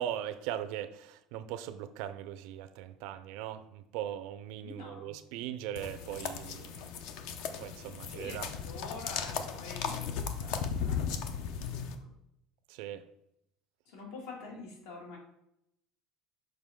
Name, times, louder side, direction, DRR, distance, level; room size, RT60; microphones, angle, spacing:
voice 1, 0.0-6.9 7.6-8.5 12.7-13.0, right 11 dB, 70° right, 11 dB, 0.5 m, -39 dB
voice 2, 4.6-5.2 8.1-11.1 11.3-11.8 13.9-15.2, left 3 dB, 85° left, -1 dB, 2.3 m, -46 dB
sound 1, 5.8-11.9, left 7 dB, 65° left, 0.7 m, -36 dB
6.5 x 5.0 x 3.7 m, 0.80 s
cardioid pair, 150°, 0 cm